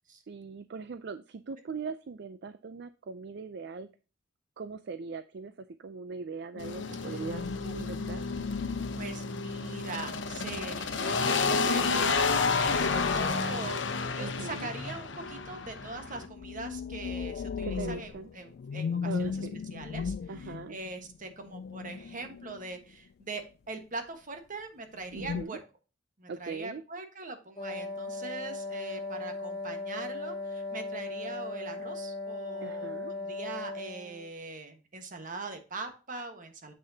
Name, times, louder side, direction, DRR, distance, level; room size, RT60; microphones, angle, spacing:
voice 1, 0.3-3.9 4.6-7.5 7.7-8.2 14.2-14.7 17.6-18.3 19.0-19.6 20.3-20.7 25.1-25.6 26.3-26.8 32.6-33.1, right 4 dB, 65° right, 11 dB, 0.5 m, -40 dB
sound 1, 6.6-16.3, left 4 dB, 80° left, 0.9 m, -31 dB
sound 2, 6.6-9.7 10.4-14.3 15.9-22.9 25.0-25.4, left 6 dB, 55° left, 0.3 m, -38 dB
voice 2, 9.0-25.6 26.2-36.7, right 3 dB, 45° right, 6 dB, 1.4 m, -42 dB
Wind instrument woodwind instrument, 27.6-34.3, left 3 dB, 25° left, 1.7 m, -37 dB
7.8 x 6.4 x 2.8 m, 0.33 s
head